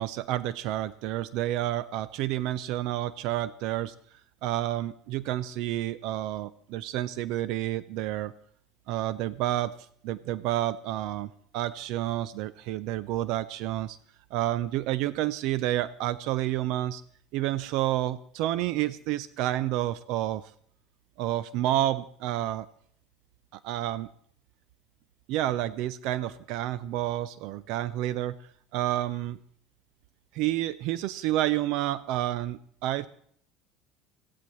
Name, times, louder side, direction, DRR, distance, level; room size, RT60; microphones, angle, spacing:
voice 1, 0.0-3.9 4.4-8.3 8.9-9.7 10.0-14.0 14.3-17.0 17.3-20.5 21.2-22.7 23.5-24.1 25.3-28.4 28.7-29.4 30.3-33.1, right 14 dB, 60° right, 16 dB, 0.5 m, -29 dB
22.0 x 16.0 x 3.1 m, 0.63 s
cardioid pair, 160°, 0 cm